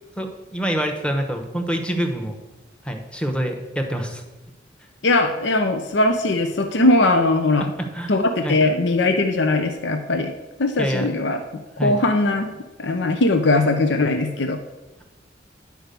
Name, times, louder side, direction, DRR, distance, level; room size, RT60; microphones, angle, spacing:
voice 1, 0.2-2.3 2.8-4.2 7.8-8.1 8.4-8.6 10.8-11.1 11.8-12.0, equal, 5° left, 4 dB, 1.0 m, -26 dB
voice 2, 5.0-7.7 8.1-10.3 10.6-11.4 11.8-12.5 12.8-14.6, left 2 dB, 75° left, 6 dB, 0.7 m, -20 dB
10.5 x 4.6 x 6.8 m, 1.2 s
head